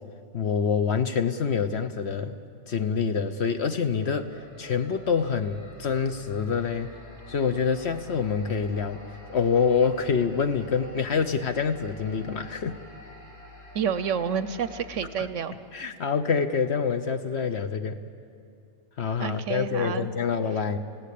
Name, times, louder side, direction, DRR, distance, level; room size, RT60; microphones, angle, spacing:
voice 1, 0.3-2.4 2.7-6.9 7.3-9.0 9.3-12.8 15.2-15.3 15.7-18.0 19.0-20.8, left 6 dB, 55° left, 9 dB, 1.0 m, -26 dB
sound 1, 3.4-14.9, left 2 dB, 80° left, 5.1 m, -48 dB
voice 2, 13.7-15.5 19.2-20.1, right 7 dB, 60° right, 12 dB, 1.0 m, -29 dB
27.5 x 17.0 x 8.4 m, 2.5 s
omnidirectional pair, 1.6 m